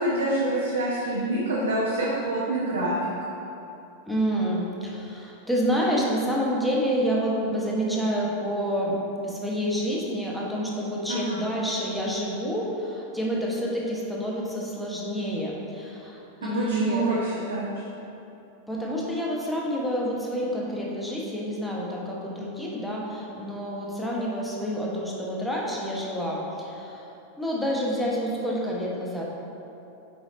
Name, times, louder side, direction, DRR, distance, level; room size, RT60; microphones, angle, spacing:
voice 1, 0.0-2.9 11.1-11.4 16.5-17.7, right 1 dB, 70° right, -7 dB, 0.9 m, -26 dB
voice 2, 4.1-9.0 9.2-17.1 18.7-27.1 27.4-29.3, equal, ahead, -4 dB, 1.2 m, -28 dB
6.2 x 4.8 x 3.9 m, 2.9 s
figure-of-eight pair, 90°, 0 cm